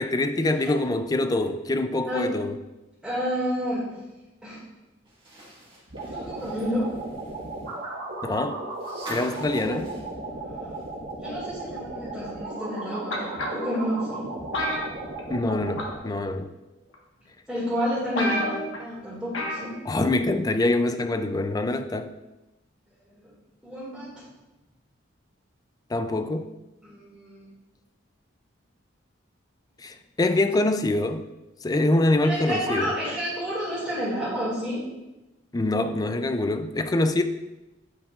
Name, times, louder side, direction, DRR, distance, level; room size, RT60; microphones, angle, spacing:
voice 1, 0.0-2.6 8.2-8.6 9.1-9.9 15.3-16.5 19.9-22.1 25.9-26.5 29.8-31.3 31.6-32.9 35.5-37.2, left 2 dB, 20° left, 9 dB, 0.3 m, -25 dB
voice 2, 2.0-2.3 3.0-4.0 4.4-4.6 6.0-7.0 9.6-9.8 10.2-10.8 11.2-14.3 17.5-19.8 23.0-23.3 23.6-24.3 26.8-27.5 32.2-34.9, equal, 5° right, -11 dB, 2.1 m, -30 dB
sound 1, 5.1-11.1 11.4-11.5 12.9-13.0, right 1 dB, 25° right, 1.9 m, -45 dB
sound 2, 5.9-16.0, right 2 dB, 65° right, 1.6 m, -36 dB
sound 3, 13.1-13.8 14.5-15.5 15.8-16.1 16.9-17.0 17.6-17.7 17.8-17.9 18.2-18.8 19.3-19.7 20.0-20.1, left 1 dB, 85° left, 1.4 m, -29 dB
9.2 x 5.7 x 2.4 m, 1.0 s
head